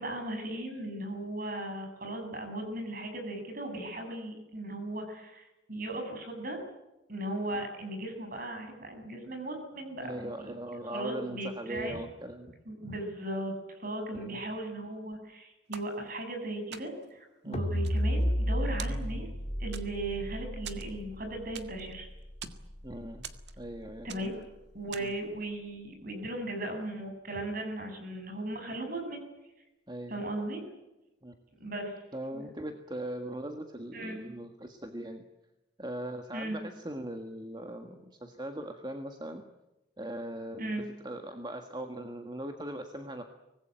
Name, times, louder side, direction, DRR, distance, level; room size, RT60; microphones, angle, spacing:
voice 1, 0.0-6.7 7.1-10.6 10.8-12.0 12.7-13.5 13.8-19.3 19.6-22.1 24.0-24.4 24.7-29.2 30.1-30.6 31.6-32.0 32.3-32.5 33.9-34.2 36.3-36.6 40.6-40.9, right 1 dB, 45° right, 5 dB, 7.4 m, -37 dB
voice 2, 10.0-12.6 14.1-14.4 17.4-17.7 22.8-23.3 23.6-24.3 25.0-25.1 29.9-30.2 31.2-31.4 32.1-35.2 35.8-39.4 40.0-40.7 41.0-43.2, right 1 dB, 20° right, 5 dB, 1.6 m, -40 dB
sound 1, 15.7-16.4 16.7-17.2 17.6-18.5 18.8-19.4 19.7-20.2 20.6-21.9 22.2-22.7 23.2-23.8 24.1-24.5 24.9-25.3, right 8 dB, 60° right, 1.8 m, -45 dB
sound 2, 17.5-23.8, equal, 35° left, 2.8 m, -33 dB
24.5 x 20.0 x 9.2 m, 0.97 s
head